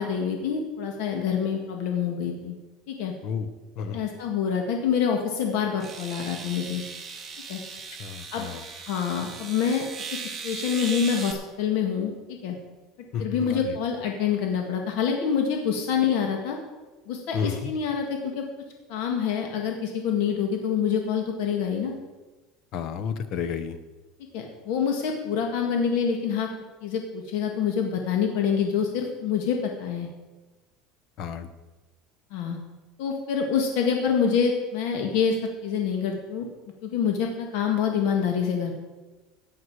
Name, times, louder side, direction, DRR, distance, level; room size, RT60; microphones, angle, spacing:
voice 1, 0.0-2.6 2.9-3.1 3.9-6.8 7.5-7.6 8.3-8.5 8.9-12.6 13.2-16.6 17.1-18.5 18.9-22.0 24.3-26.5 26.8-30.1 32.3-32.6 33.0-36.5 36.8-38.7, left 7 dB, 70° left, 2 dB, 1.9 m, -26 dB
sound 1, 4.9-5.0 5.8-11.3, right 5 dB, 20° right, 1.5 m, -38 dB
voice 2, 8.0-8.6 13.1-13.8 17.3-17.7 22.7-23.8 31.2-31.5, left 6 dB, 45° left, 12 dB, 1.0 m, -31 dB
14.5 x 9.4 x 4.9 m, 1.2 s
cardioid pair, 145°, 0 cm